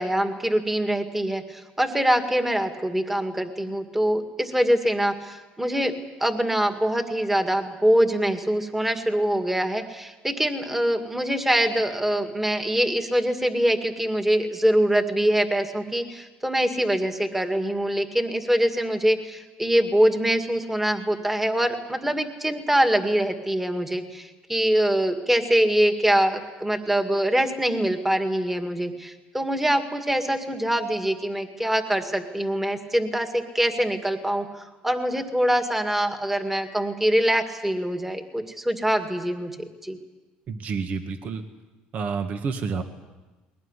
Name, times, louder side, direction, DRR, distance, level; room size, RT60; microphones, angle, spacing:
voice 1, 0.0-5.9 6.2-40.0, right 1 dB, 10° right, 6 dB, 2.2 m, -24 dB
voice 2, 40.5-41.4 41.9-42.8, right 5 dB, 50° right, 7 dB, 1.8 m, -29 dB
21.0 x 18.5 x 9.9 m, 1.2 s
cardioid pair, 105°, 3 cm